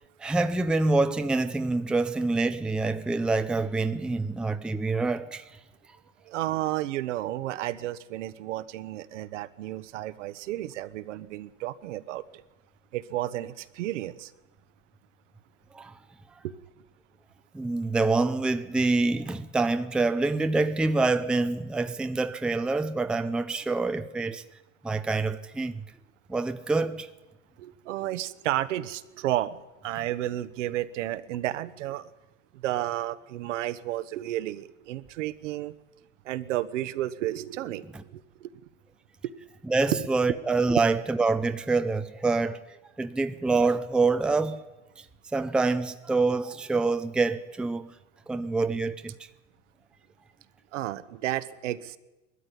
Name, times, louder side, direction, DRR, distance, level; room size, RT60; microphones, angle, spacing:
voice 1, 0.2-5.4 15.7-15.9 17.5-24.4 24.8-25.8 26.3-27.1 39.7-42.6 43.0-44.6 45.3-47.9 48.3-49.1, right 3 dB, ahead, 0.6 m, -26 dB
voice 2, 6.3-12.2 12.9-14.3 16.4-16.5 27.6-32.1 32.6-35.7 36.2-38.5 50.7-52.0, right 14 dB, 70° right, 1.2 m, -32 dB
20.5 x 13.5 x 9.9 m
hypercardioid pair, 120°, 39 cm